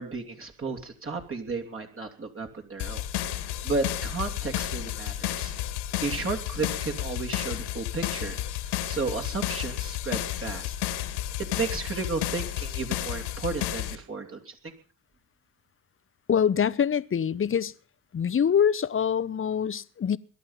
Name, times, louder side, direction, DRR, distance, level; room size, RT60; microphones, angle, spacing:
voice 1, 0.0-3.1 3.3-5.5 6.0-8.4 8.9-10.8 11.4-14.7, right 4 dB, 30° right, 3.1 m, -33 dB
sound 1, 2.8-14.0, left 12 dB, 70° left, 2.2 m, -32 dB
voice 2, 16.3-17.7 18.1-20.2, left 8 dB, 30° left, 1.0 m, -24 dB
22.0 x 11.0 x 5.8 m
hypercardioid pair, 60°, 42 cm